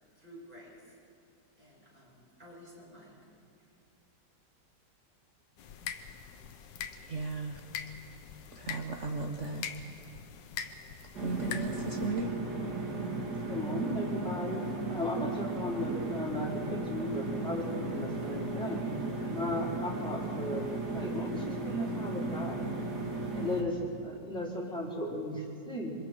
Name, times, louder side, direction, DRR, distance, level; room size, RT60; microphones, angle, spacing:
voice 1, 0.1-1.0 1.6-3.1, equal, 25° right, -6 dB, 7.8 m, -52 dB
sound 1, 5.6-12.1, left 7 dB, 85° left, 1.6 m, -43 dB
voice 2, 7.1-7.6 8.5-9.6 11.2-12.3, right 3 dB, 50° right, 2 dB, 1.3 m, -35 dB
sound 2, 11.1-23.6, right 2 dB, 65° right, 2.8 m, -36 dB
voice 3, 13.5-14.6 14.9-18.9 19.3-20.6 20.9-22.6 23.3-23.8 24.0-25.9, left 1 dB, 5° left, -6 dB, 4.0 m, -36 dB
27.5 x 24.5 x 4.5 m, 2.5 s
omnidirectional pair, 1.9 m